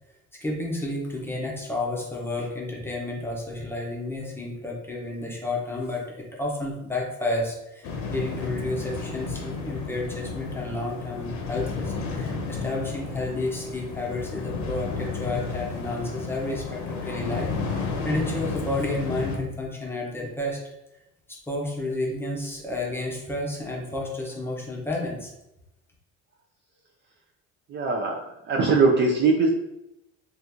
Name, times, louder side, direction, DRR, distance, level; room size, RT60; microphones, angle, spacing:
voice 1, 0.4-6.0 6.4-20.6 21.3-25.3, left 2 dB, 5° left, -2 dB, 0.7 m, -31 dB
sound 1, 7.8-19.4, left 4 dB, 70° left, 0.8 m, -32 dB
voice 2, 27.7-28.2 28.4-29.5, right 4 dB, 40° right, 0 dB, 0.4 m, -21 dB
2.8 x 2.5 x 3.5 m, 0.87 s
cardioid pair, 130°, 31 cm